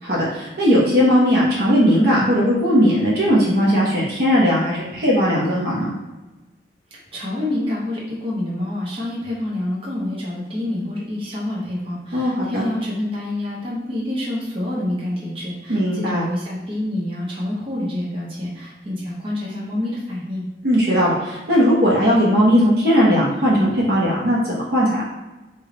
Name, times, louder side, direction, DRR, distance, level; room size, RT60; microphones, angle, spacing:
voice 1, 0.0-5.9 12.1-12.6 15.7-16.2 20.6-25.0, equal, 60° right, -6 dB, 0.8 m, -18 dB
voice 2, 7.1-20.4, left 1 dB, 30° right, -6 dB, 0.8 m, -27 dB
3.2 x 2.3 x 3.7 m, 1.1 s
head